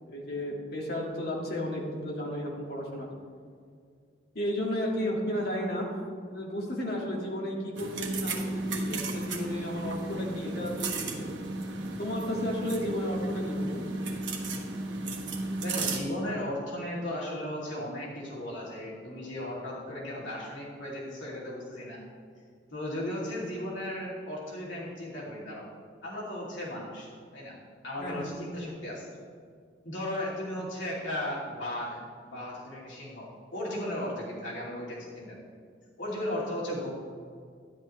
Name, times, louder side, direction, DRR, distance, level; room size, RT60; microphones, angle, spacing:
voice 1, 0.1-3.1 4.3-6.0 6.3-11.3 12.0-13.8 28.0-28.3, left 1 dB, 55° left, -2 dB, 2.2 m, -33 dB
sound 1, 7.7-16.0, right 2 dB, 80° right, 1.4 m, -34 dB
voice 2, 15.6-22.0 22.7-25.7 26.0-27.6 27.8-29.2 29.8-35.4 36.0-36.9, left 1 dB, 90° left, -6 dB, 2.9 m, -36 dB
12.5 x 10.5 x 3.3 m, 2.2 s
head